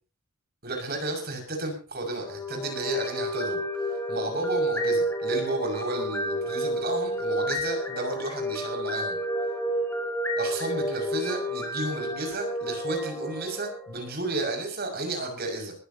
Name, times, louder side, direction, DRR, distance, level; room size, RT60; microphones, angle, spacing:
voice 1, 0.6-9.2 10.4-15.7, right 2 dB, 45° right, 2 dB, 6.1 m, -33 dB
sound 1, 2.2-14.3, equal, 10° left, 4.2 m, -30 dB
22.0 x 15.5 x 2.9 m, 0.37 s
head